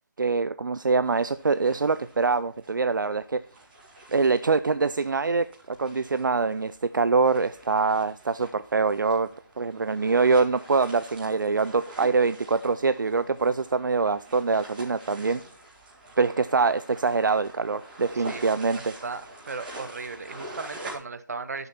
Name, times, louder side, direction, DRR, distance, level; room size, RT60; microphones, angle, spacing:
voice 1, 0.2-3.4 4.1-9.3 9.6-15.4 16.2-18.9, right 4 dB, 70° right, 14 dB, 0.5 m, -24 dB
sound 1, 1.0-20.9, right 1 dB, 25° right, 3.9 m, -46 dB
voice 2, 18.3-19.2 19.5-21.7, right 4 dB, 50° right, 12 dB, 1.2 m, -36 dB
12.0 x 6.8 x 4.3 m, 0.42 s
figure-of-eight pair, 165°, 11 cm